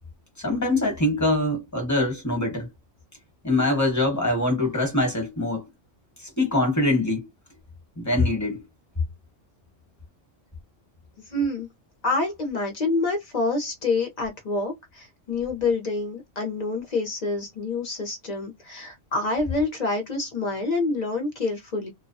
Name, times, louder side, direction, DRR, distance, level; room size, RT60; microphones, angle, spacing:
voice 1, 0.4-2.7 3.4-5.7 6.4-7.3 8.0-8.6, left 2 dB, 15° left, 1.0 m, -23 dB
voice 2, 11.3-11.7 12.0-21.9, left 3 dB, 40° left, 0.7 m, -27 dB
2.3 x 2.1 x 2.6 m
omnidirectional pair, 1.3 m